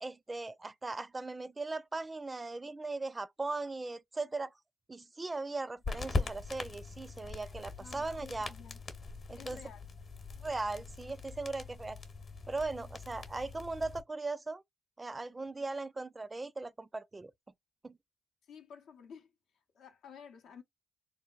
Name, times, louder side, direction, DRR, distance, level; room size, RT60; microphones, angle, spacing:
voice 1, 0.0-4.5 4.9-8.5 9.3-9.6 10.4-12.0 12.5-14.6 15.0-17.3 17.8-18.0, right 3 dB, 30° right, 0.4 m, -38 dB
sound 1, 5.8-14.0, left 3 dB, 55° left, 0.9 m, -41 dB
voice 2, 7.8-8.8 9.4-9.9 18.5-19.3 19.7-20.6, left 7 dB, 75° left, 0.6 m, -52 dB
3.2 x 2.2 x 2.3 m
supercardioid pair, 50°, 0 cm